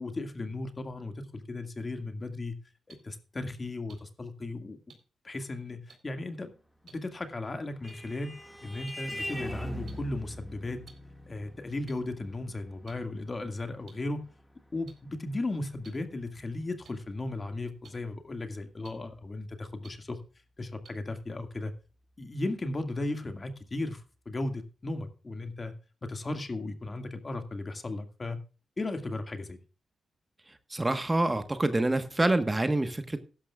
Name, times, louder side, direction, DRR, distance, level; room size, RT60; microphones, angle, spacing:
voice 1, 0.0-2.5 2.9-4.8 5.2-6.5 6.9-8.3 8.6-10.8 11.3-14.2 14.7-20.2 20.6-21.7 22.2-25.7 26.0-28.4 28.8-29.6, left 2 dB, 35° left, 7 dB, 2.1 m, -36 dB
sound 1, 2.9-3.0 3.9-4.0 4.9-5.0 5.9-6.0 6.9-7.0 7.9-8.0 8.9-9.0 9.9-10.0 10.9-11.0 11.9-12.0 12.9-13.0 13.9-14.0 14.9-15.0 15.8-15.9 16.8-16.9 17.8-17.9 18.8-18.9 19.8-19.9 20.8-20.9, right 6 dB, 65° right, 4.1 m, -51 dB
Vehicle horn car horn honking, 7.3-16.2, equal, 5° left, 2.0 m, -43 dB
voice 2, 30.7-33.2, right 2 dB, 20° right, 9 dB, 1.3 m, -26 dB
15.5 x 12.0 x 2.4 m, 0.35 s
cardioid pair, 70°, 0 cm